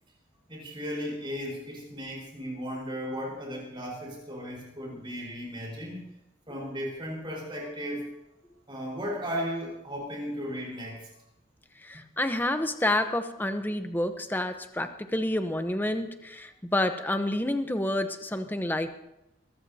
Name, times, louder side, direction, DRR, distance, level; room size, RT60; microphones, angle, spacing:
voice 1, 0.5-6.0 6.5-8.2 8.7-11.1, equal, 25° right, -2 dB, 4.5 m, -35 dB
voice 2, 11.8-18.9, left 1 dB, 10° left, 7 dB, 0.8 m, -29 dB
23.0 x 15.0 x 2.8 m, 0.89 s
head